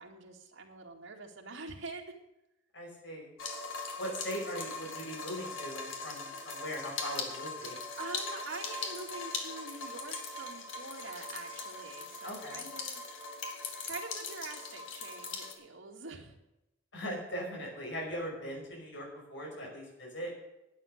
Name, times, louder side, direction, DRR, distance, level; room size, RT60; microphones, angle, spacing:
voice 1, 0.0-2.2 8.0-13.2 13.9-16.4, right 3 dB, 90° right, 1 dB, 2.3 m, -45 dB
voice 2, 2.7-3.3 4.0-7.8 12.2-12.6 16.9-20.3, equal, 70° left, -1 dB, 5.6 m, -40 dB
sound 1, 3.4-15.5, left 4 dB, 85° left, 2.2 m, -40 dB
12.0 x 9.8 x 6.7 m, 0.93 s
head